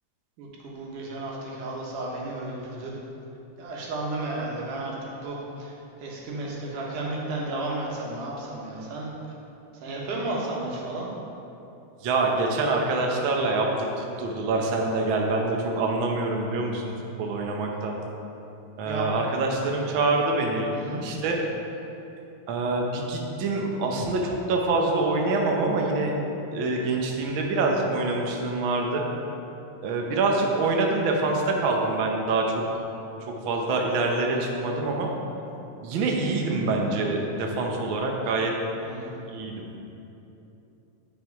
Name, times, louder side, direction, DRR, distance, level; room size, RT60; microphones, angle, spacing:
voice 1, 0.4-2.9 3.6-5.7 6.0-9.1 9.8-11.1 18.8-19.1 20.7-21.0 38.8-39.1, right 2 dB, 90° right, -3 dB, 2.8 m, -33 dB
voice 2, 12.0-13.7 14.0-16.9 17.2-17.9 18.8-20.7 21.0-21.4 22.5-26.1 26.5-29.0 29.8-32.5 33.4-35.1 35.8-38.5 39.3-39.6, right 3 dB, 75° right, 0 dB, 1.1 m, -25 dB
9.5 x 5.6 x 4.7 m, 3.0 s
omnidirectional pair, 3.5 m